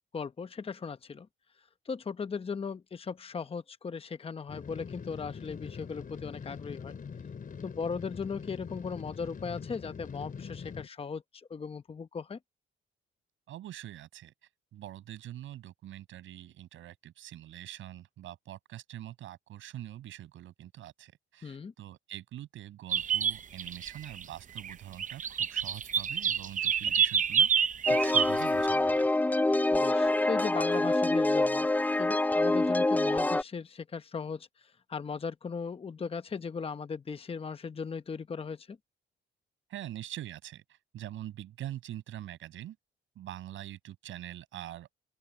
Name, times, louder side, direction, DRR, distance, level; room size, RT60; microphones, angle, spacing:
voice 1, 0.1-1.3 1.9-6.9 7.6-12.4 21.4-21.7 29.7-31.7 32.0-34.5 34.9-38.8, left 5 dB, 30° left, 0.9 m, -37 dB
Rocket Ship Engine Heavy, 4.5-10.9, left 6 dB, 45° left, 3.9 m, -43 dB
voice 2, 13.5-14.3 14.7-27.5 27.8-29.1 39.7-42.8 43.2-44.9, right 13 dB, 80° right, 7.5 m, -44 dB
sound 1, 22.9-24.2 24.6-24.7 25.0-28.4, right 7 dB, 40° right, 0.7 m, -28 dB
sound 2, 27.9-33.4, left 2 dB, 10° left, 0.5 m, -26 dB
open air
cardioid pair, 90°, 20 cm